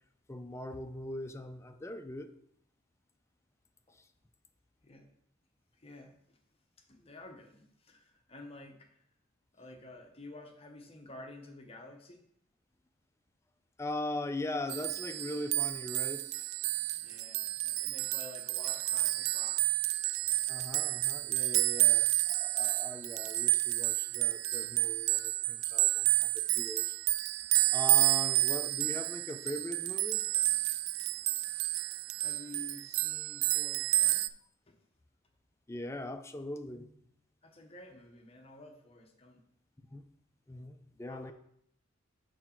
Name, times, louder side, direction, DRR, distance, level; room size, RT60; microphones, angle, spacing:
voice 1, 0.3-2.3 3.9-4.0 13.8-16.5 20.5-26.9 27.7-30.2 35.7-37.1 39.9-40.1 40.5-41.3, left 1 dB, 15° left, 8 dB, 0.4 m, -40 dB
voice 2, 5.8-6.4 6.8-9.0 9.5-12.2 16.9-19.6 21.7-22.1 31.0-34.3 34.7-34.8 37.4-39.4 41.1-41.3, left 2 dB, 30° left, 3 dB, 0.9 m, -51 dB
sound 1, 14.7-34.3, right 17 dB, 80° right, 0.3 m, -30 dB
6.3 x 5.6 x 4.4 m, 0.70 s
head